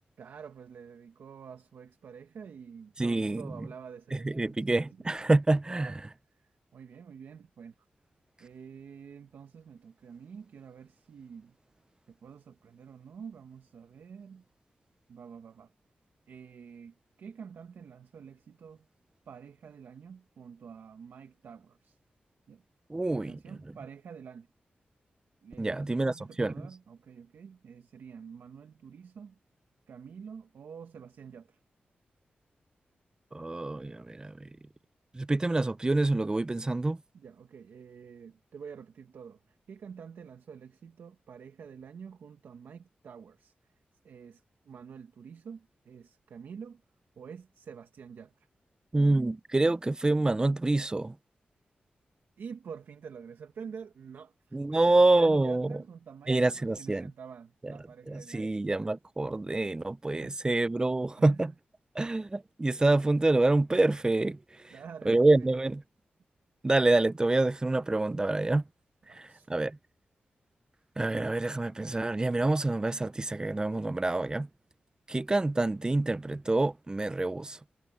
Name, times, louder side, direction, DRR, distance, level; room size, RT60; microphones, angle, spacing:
voice 1, 0.2-4.8 5.7-6.0 6.7-7.7 8.4-11.6 12.1-14.4 15.1-15.7 16.3-18.9 19.3-22.0 22.5-22.6 23.1-24.5 25.4-29.4 29.9-31.6 37.1-43.5 44.0-46.8 47.2-48.5 52.4-58.5 60.0-60.6 61.2-61.5 64.7-65.3 65.5-65.6 69.1-69.5, right 6 dB, 90° right, 1.5 m, -47 dB
voice 2, 3.0-3.5 4.1-6.0 22.9-23.3 25.6-26.7 33.3-34.5 35.1-37.0 48.9-51.2 54.5-55.7 56.3-57.1 57.6-57.8 58.1-61.5 61.9-64.7 65.0-65.8 66.6-68.6 69.1-69.8 71.0-74.5 75.1-77.6, right 2 dB, 20° right, 0.7 m, -27 dB
wide cardioid pair, 95°, 4 cm